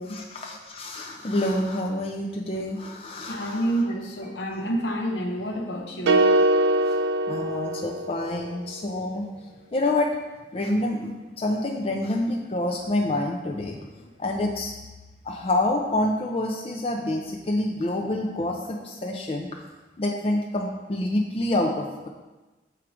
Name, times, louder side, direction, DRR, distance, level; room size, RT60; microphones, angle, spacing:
voice 1, 0.0-3.8 6.9-7.0 7.3-9.2 9.7-10.2 10.5-13.8 14.2-14.7 15.2-19.5 20.0-22.1, left 1 dB, 30° left, 0 dB, 0.5 m, -27 dB
voice 2, 3.3-6.3, right 1 dB, 70° left, 3 dB, 0.9 m, -28 dB
sound 1, 6.1-8.4, right 1 dB, 75° right, 0.4 m, -22 dB
6.1 x 4.6 x 4.9 m, 1.1 s
head